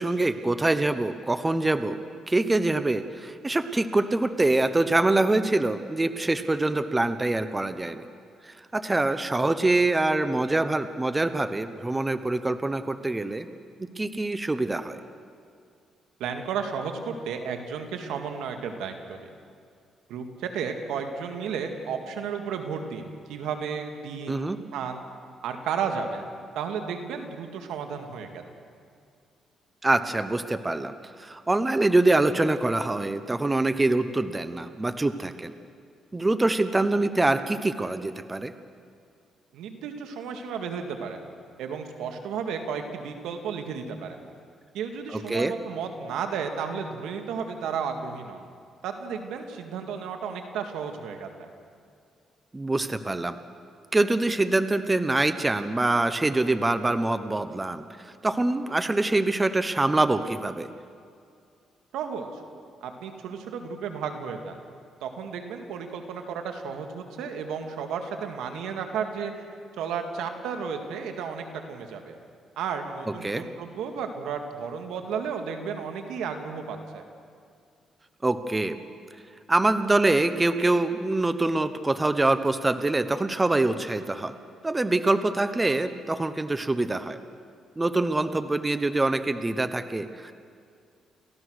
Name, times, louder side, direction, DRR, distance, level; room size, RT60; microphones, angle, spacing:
voice 1, 0.0-2.0 2.3-8.1 8.4-13.5 13.8-15.0 24.3-24.6 29.8-30.9 31.2-35.5 36.1-38.5 45.1-45.5 52.5-53.4 53.9-60.7 73.1-73.4 78.2-78.8 79.5-84.3 84.6-87.2 87.8-90.3, right 2 dB, 15° right, 11 dB, 1.0 m, -25 dB
voice 2, 16.2-19.3 20.1-25.0 25.4-26.2 26.6-28.4 39.5-41.2 41.6-44.2 44.7-48.5 48.8-51.5 61.9-62.4 62.8-64.6 65.0-69.4 69.8-72.2 72.6-77.0, right 6 dB, 90° right, 5 dB, 2.0 m, -33 dB
29.5 x 15.0 x 6.4 m, 2.3 s
cardioid pair, 90°, 0 cm